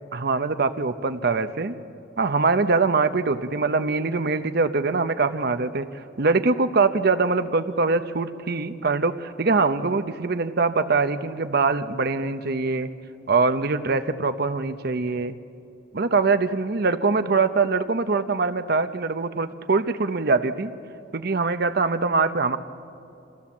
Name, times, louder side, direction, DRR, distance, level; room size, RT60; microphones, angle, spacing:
voice 1, 0.1-1.7 2.2-12.9 13.3-15.3 15.9-20.7 21.1-22.6, right 4 dB, 50° right, 10 dB, 0.7 m, -23 dB
26.5 x 15.5 x 7.2 m, 2.7 s
head